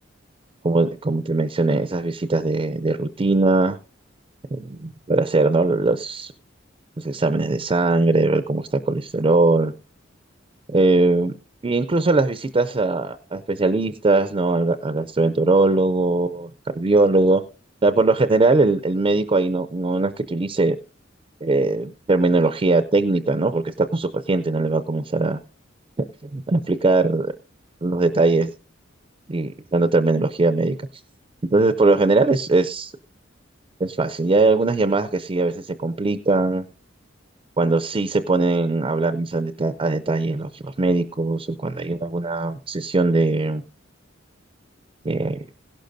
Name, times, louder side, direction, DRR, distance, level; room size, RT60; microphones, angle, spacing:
voice 1, 0.6-3.8 4.5-6.3 7.0-9.7 10.7-11.3 11.6-17.4 17.8-20.8 21.4-25.4 26.2-27.3 27.8-28.5 29.3-30.8 31.5-32.9 33.8-36.7 37.6-43.6 45.0-45.4, right 2 dB, 30° right, 11 dB, 0.4 m, -20 dB
16.0 x 11.5 x 2.6 m, 0.35 s
head